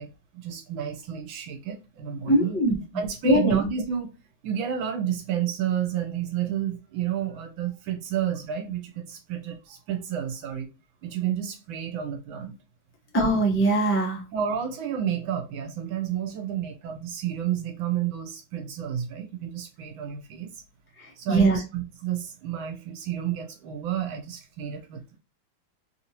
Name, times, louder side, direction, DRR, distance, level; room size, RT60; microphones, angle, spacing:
voice 1, 0.0-2.6 2.9-4.1 4.4-10.7 11.0-12.5 14.3-20.6 21.2-25.2, right 9 dB, 80° right, 1.5 m, -30 dB
voice 2, 2.3-2.8 3.2-3.6 13.1-14.2 21.0-21.6, right 1 dB, 15° left, 0.4 m, -21 dB
3.4 x 2.7 x 2.8 m
omnidirectional pair, 2.1 m